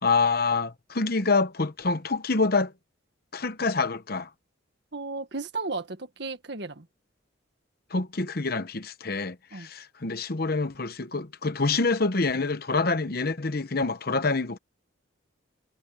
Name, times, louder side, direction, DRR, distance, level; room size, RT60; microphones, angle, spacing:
voice 1, 0.0-2.7 3.3-4.3 7.9-14.6, left 3 dB, 50° left, 1.0 m, -26 dB
voice 2, 4.9-6.9 9.5-9.7, right 3 dB, 55° right, 1.7 m, -34 dB
head